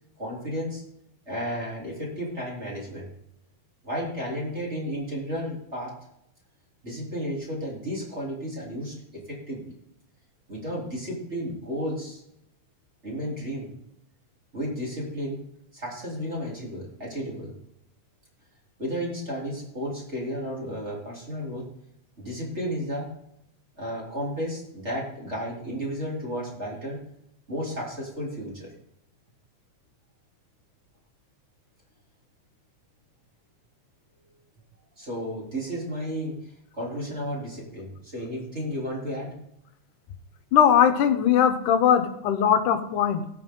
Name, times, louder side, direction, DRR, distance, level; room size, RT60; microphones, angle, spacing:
voice 1, 0.2-0.9 1.3-3.1 3.8-6.0 6.8-9.8 10.5-12.2 13.0-13.7 14.5-15.5 15.7-17.6 18.8-21.7 22.2-23.1 23.8-27.0 27.5-28.7 35.0-39.4, equal, 20° right, -4 dB, 3.7 m, -33 dB
voice 2, 40.5-43.3, left 9 dB, 75° left, 8 dB, 2.5 m, -20 dB
17.0 x 7.0 x 3.8 m, 0.77 s
omnidirectional pair, 3.7 m